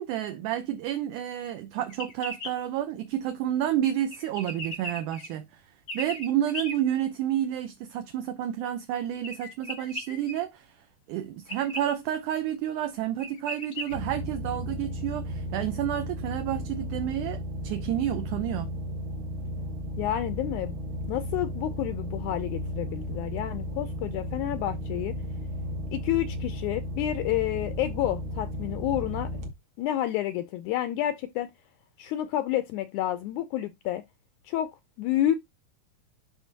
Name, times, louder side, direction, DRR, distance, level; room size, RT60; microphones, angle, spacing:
voice 1, 0.0-5.6 5.9-10.8 11.1-18.7, right 11 dB, 75° right, 2.0 m, -30 dB
sound 1, 1.9-2.5 4.1-5.3 5.9-6.7 9.2-10.3 11.5-11.8 12.8-12.9 13.2-13.9, equal, 45° left, 1.0 m, -36 dB
sound 2, 13.9-29.5, equal, 60° right, 1.3 m, -34 dB
voice 2, 20.0-20.8 21.1-25.1 25.9-29.3 29.8-31.5 32.0-34.0 34.5-34.7 35.0-35.4, left 13 dB, 80° left, 1.8 m, -29 dB
11.5 x 3.9 x 2.8 m
omnidirectional pair, 3.9 m